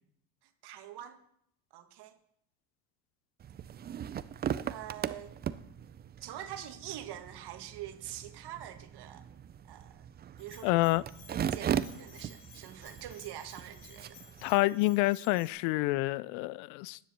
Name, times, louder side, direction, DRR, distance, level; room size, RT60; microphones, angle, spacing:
voice 1, 0.6-1.2 1.7-2.2 4.7-5.3 6.2-9.3 9.7-10.1 10.4-10.9 11.3-14.2, right 11 dB, 55° right, 1.6 m, -44 dB
sound 1, 3.4-14.6, right 9 dB, 25° right, 0.4 m, -39 dB
Bell, 10.4-15.5, left 8 dB, 90° left, 1.9 m, -56 dB
voice 2, 10.6-11.0 14.4-17.0, left 20 dB, 70° left, 0.5 m, -28 dB
10.0 x 7.4 x 6.8 m
supercardioid pair, 95°, 46 cm